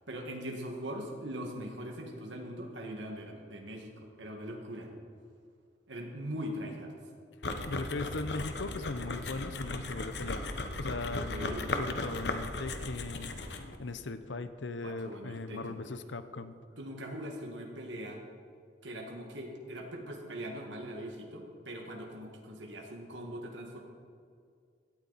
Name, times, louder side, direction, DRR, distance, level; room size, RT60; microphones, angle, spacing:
voice 1, 0.1-4.9 5.9-6.9 11.1-11.7 14.8-15.8 16.8-18.2 18.8-23.8, equal, 85° right, 1 dB, 1.9 m, -41 dB
sound 1, 7.4-13.8, left 2 dB, 65° left, 1.1 m, -37 dB
voice 2, 7.6-10.4 10.8-13.3 13.8-16.5, left 3 dB, 85° left, 11 dB, 0.8 m, -38 dB
17.0 x 13.0 x 4.2 m, 2.2 s
head